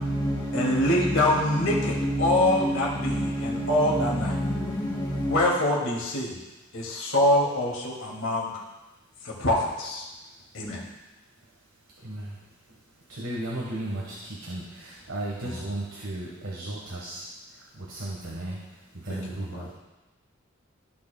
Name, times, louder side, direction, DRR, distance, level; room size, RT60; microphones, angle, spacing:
voice 1, 0.0-5.4, equal, 25° left, 2.9 m, -28 dB
voice 2, 0.5-4.3 5.3-6.4 6.7-8.6 9.2-10.0 10.5-10.8 15.4-15.6 19.1-19.7, left 1 dB, 70° left, 2.4 m, -25 dB
voice 3, 13.1-17.2 17.8-18.7 18.9-19.7, right 1 dB, 75° right, 1.4 m, -35 dB
15.0 x 6.1 x 2.3 m
head